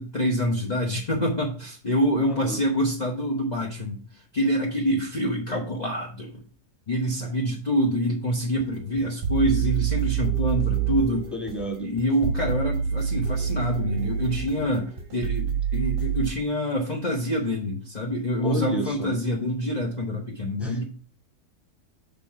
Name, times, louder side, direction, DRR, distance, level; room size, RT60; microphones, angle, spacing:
voice 1, 0.0-4.0 4.3-6.4 6.9-11.3 11.8-20.8, equal, 30° left, -1 dB, 1.2 m, -26 dB
voice 2, 2.2-2.6 11.3-11.9 18.4-19.2 20.6-20.9, equal, ahead, -1 dB, 1.7 m, -30 dB
sound 1, 8.6-16.3, right 9 dB, 40° right, 1.0 m, -27 dB
6.9 x 3.8 x 5.8 m, 0.42 s
omnidirectional pair, 1.6 m